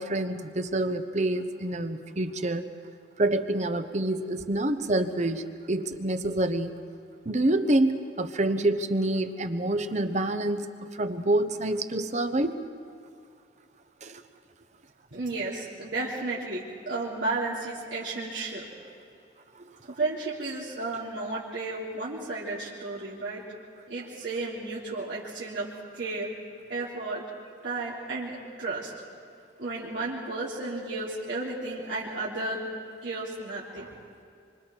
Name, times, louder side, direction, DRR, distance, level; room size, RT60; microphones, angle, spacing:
voice 1, 0.0-2.6 3.2-6.8 7.2-12.6 14.0-14.2, right 1 dB, 40° right, 9 dB, 1.0 m, -27 dB
voice 2, 15.1-18.6 19.9-23.4 23.9-25.7 25.9-26.3 26.7-27.2 27.6-28.9 29.6-32.7 33.0-33.9, right 2 dB, 85° right, -8 dB, 3.4 m, -33 dB
26.5 x 25.5 x 4.6 m, 2.4 s
head